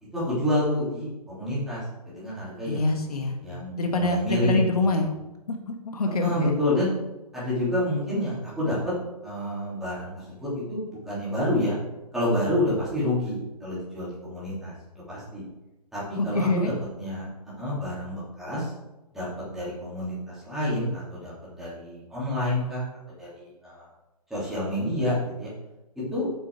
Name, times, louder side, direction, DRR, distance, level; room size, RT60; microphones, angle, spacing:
voice 1, 0.1-2.8 3.4-4.7 6.2-6.9 7.3-8.9 9.2-11.7 12.1-14.7 15.1-15.4 15.9-16.7 17.0-17.3 17.5-18.7 19.1-23.9 24.3-25.5 25.9-26.3, left 1 dB, ahead, -11 dB, 3.3 m, -28 dB
voice 2, 2.7-3.4 3.8-5.1 5.5-5.6 5.9-6.5 16.2-16.7, left 2 dB, 70° left, 3 dB, 1.7 m, -25 dB
9.0 x 6.8 x 4.8 m, 1.0 s
hypercardioid pair, 165°, 20 cm